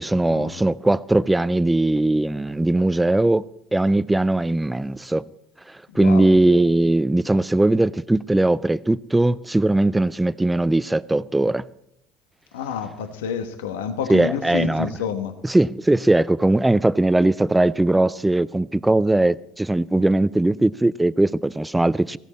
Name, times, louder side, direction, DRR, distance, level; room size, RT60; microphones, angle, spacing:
voice 1, 0.0-3.4 3.7-5.2 5.7-11.7 14.1-14.9 15.4-22.2, right 2 dB, 10° right, 0.5 m, -19 dB
voice 2, 5.9-6.4 12.5-15.4, left 8 dB, 80° left, 1.2 m, -29 dB
17.5 x 15.5 x 4.2 m
hypercardioid pair, 70°, 0 cm